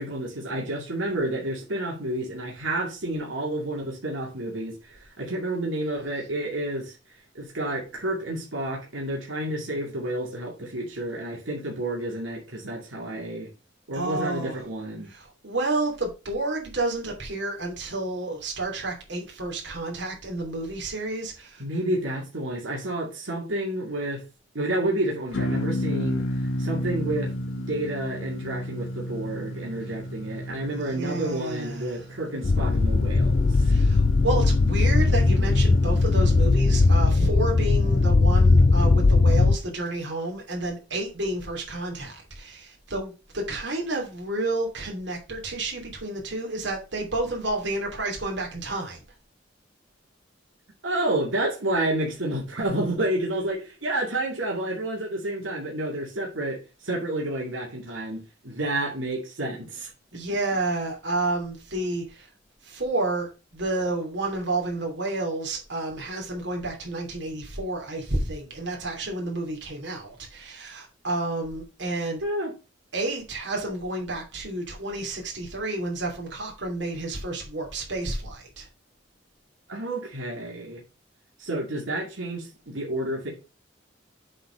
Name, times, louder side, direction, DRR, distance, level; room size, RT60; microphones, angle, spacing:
voice 1, 0.0-7.0 7.3-13.5 13.9-15.1 21.6-24.2 24.5-26.2 26.6-27.3 27.7-33.5 50.8-59.9 72.2-72.5 79.7-80.8 81.4-83.3, right 1 dB, 90° right, 2.3 m, -30 dB
voice 2, 13.9-14.6 15.1-21.6 30.7-32.0 33.6-49.0 60.1-62.3 62.6-72.2 72.9-78.7, right 2 dB, 65° right, 2.9 m, -30 dB
sound 1, 25.3-35.9, left 1 dB, 85° left, 1.6 m, -33 dB
sound 2, 32.4-39.6, left 3 dB, 40° left, 0.4 m, -19 dB
7.7 x 4.2 x 5.1 m
head